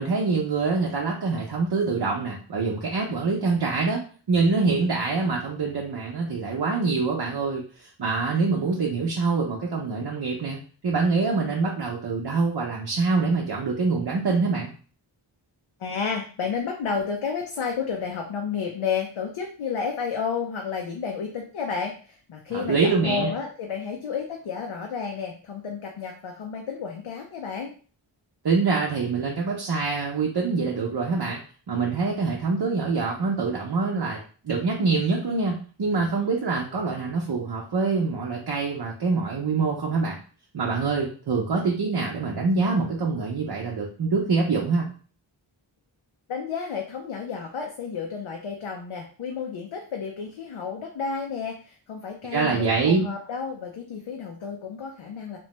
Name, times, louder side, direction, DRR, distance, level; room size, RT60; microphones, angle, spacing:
voice 1, 0.0-4.0 4.3-14.7 22.5-23.3 28.4-31.4 31.7-34.2 34.4-40.2 40.5-44.9 52.3-53.0, right 4 dB, 55° right, -2 dB, 0.7 m, -25 dB
voice 2, 15.8-27.7 46.3-55.4, left 6 dB, 85° left, 1 dB, 0.6 m, -31 dB
3.0 x 2.1 x 2.9 m, 0.40 s
wide cardioid pair, 50°, 47 cm